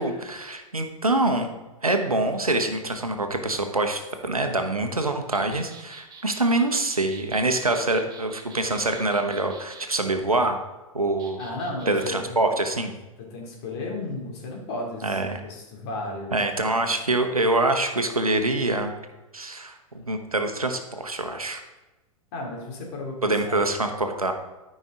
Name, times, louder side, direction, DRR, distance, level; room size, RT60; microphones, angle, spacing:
voice 1, 0.0-1.5 1.8-10.6 10.9-11.4 11.9-12.9 15.0-15.4 16.3-18.9 19.3-21.6 23.2-24.3, right 2 dB, 90° right, 6 dB, 1.0 m, -25 dB
sound 1, 5.3-9.8 11.2-12.1, right 5 dB, 25° right, 1.4 m, -47 dB
voice 2, 11.4-12.4 13.2-16.4 22.3-23.6, left 2 dB, 50° left, -1 dB, 2.7 m, -34 dB
12.5 x 5.4 x 3.7 m, 1.1 s
figure-of-eight pair, 100°, 18 cm